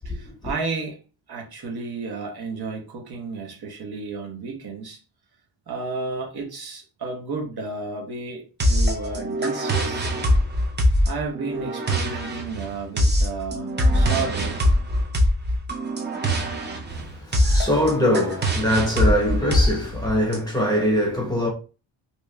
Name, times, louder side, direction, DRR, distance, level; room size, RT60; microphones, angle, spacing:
voice 1, 0.1-1.0 1.3-5.0 5.7-10.1 11.1-14.6, right 4 dB, 55° right, 1.0 m, -32 dB
sound 1, 8.6-20.4, equal, 25° right, 0.5 m, -22 dB
voice 2, 16.9-21.5, equal, 10° left, 1.1 m, -23 dB
2.9 x 2.5 x 3.2 m
wide cardioid pair, 175°, 44 cm